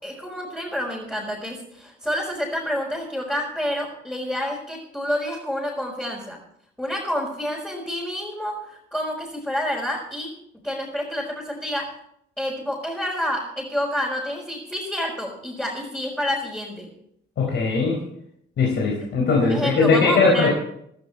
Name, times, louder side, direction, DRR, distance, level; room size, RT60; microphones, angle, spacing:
voice 1, 0.0-6.4 6.8-10.3 10.6-12.0 12.4-16.9 19.5-20.5, equal, 5° left, -4 dB, 4.8 m, -28 dB
voice 2, 17.4-18.0 18.6-20.5, left 4 dB, 65° left, -1 dB, 4.4 m, -19 dB
16.0 x 14.0 x 4.2 m, 0.73 s
cardioid pair, 90°, 20 cm